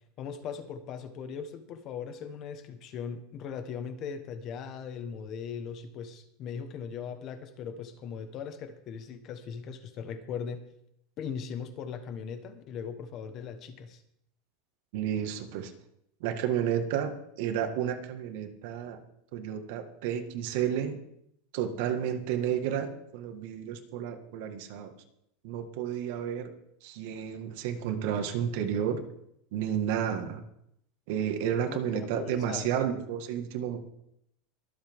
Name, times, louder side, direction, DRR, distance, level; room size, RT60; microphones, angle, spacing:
voice 1, 0.2-10.6 11.2-14.0 31.6-32.7, left 7 dB, 35° left, 9 dB, 1.4 m, -39 dB
voice 2, 14.9-15.7 16.2-19.0 19.3-21.0 21.5-24.9 25.4-26.5 26.8-29.0 29.5-30.4 31.1-33.8, right 9 dB, 60° right, 6 dB, 1.8 m, -31 dB
23.5 x 7.9 x 3.7 m, 0.76 s
supercardioid pair, 155°, 0 cm